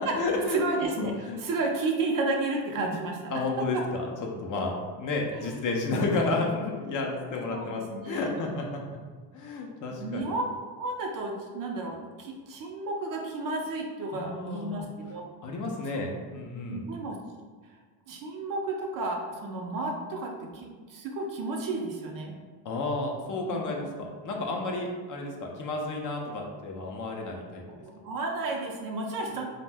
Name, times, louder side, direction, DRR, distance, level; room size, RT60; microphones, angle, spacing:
voice 1, 0.0-0.6 1.0-1.4 3.3-4.1 4.4-9.0 9.3-10.3 14.1-14.9 15.4-16.9 22.6-27.8, left 3 dB, 45° left, 0 dB, 0.4 m, -31 dB
voice 2, 0.5-3.2 3.7-3.8 5.3-5.5 6.1-6.3 7.5-8.4 10.0-10.4 10.7-15.2 16.7-17.2 18.1-22.3 23.5-23.8 27.7-29.4, right 3 dB, 45° right, 1 dB, 0.5 m, -32 dB
2.5 x 2.1 x 3.3 m, 1.5 s
cardioid pair, 115°, 48 cm